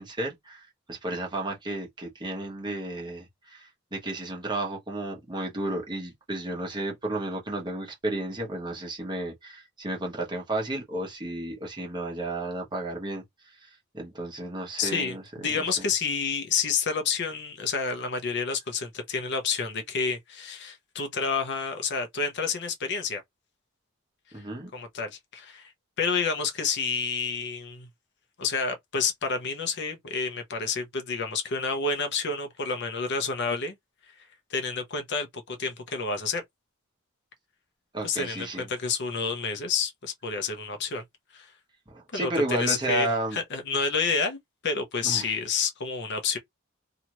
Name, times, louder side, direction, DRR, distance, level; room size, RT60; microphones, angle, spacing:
voice 1, 0.0-13.2 13.6-13.7 13.9-15.2 15.6-15.9 24.3-24.7 37.9-38.7 41.9-43.4 45.0-45.3, right 2 dB, 20° right, 1.0 m, -32 dB
voice 2, 14.8-23.2 24.7-25.7 26.0-27.9 28.4-33.8 34.5-36.4 38.0-41.0 41.3-41.5 42.1-44.4 44.6-46.4, left 5 dB, 55° left, 0.7 m, -29 dB
2.8 x 2.4 x 3.0 m
head